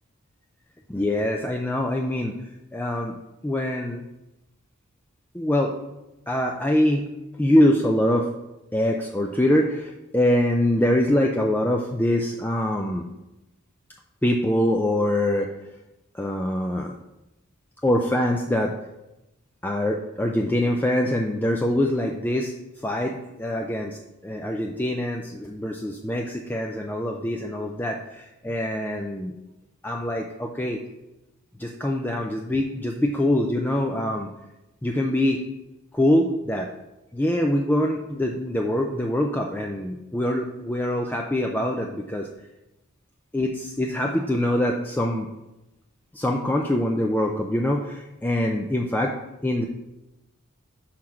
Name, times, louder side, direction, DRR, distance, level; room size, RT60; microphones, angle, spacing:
voice 1, 0.9-2.4 2.7-3.2 3.4-4.0 5.3-5.8 6.3-7.1 7.4-8.3 8.7-13.0 14.2-15.5 16.1-17.0 17.8-18.7 19.6-24.0 24.2-29.3 29.8-30.8 31.6-34.3 34.8-35.4 35.9-36.7 37.1-42.3 43.3-45.3 46.1-49.2 49.4-49.7, left 1 dB, 10° left, 1 dB, 0.4 m, -24 dB
5.8 x 4.4 x 6.2 m, 0.94 s
head